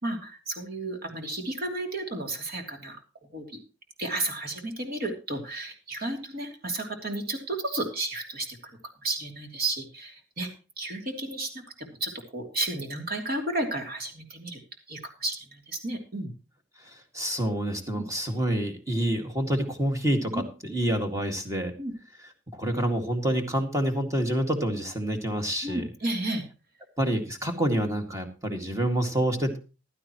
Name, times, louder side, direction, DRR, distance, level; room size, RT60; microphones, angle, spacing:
voice 1, 0.0-3.0 3.3-3.5 4.0-10.5 10.8-11.5 11.8-14.6 14.9-16.3 17.9-18.0 20.3-20.4 21.8-21.9 25.6-26.4, right 2 dB, 50° right, 3 dB, 3.0 m, -32 dB
voice 2, 16.8-21.7 22.5-25.8 27.0-29.6, right 1 dB, 15° right, 4 dB, 2.0 m, -27 dB
15.5 x 12.0 x 3.0 m, 0.32 s
head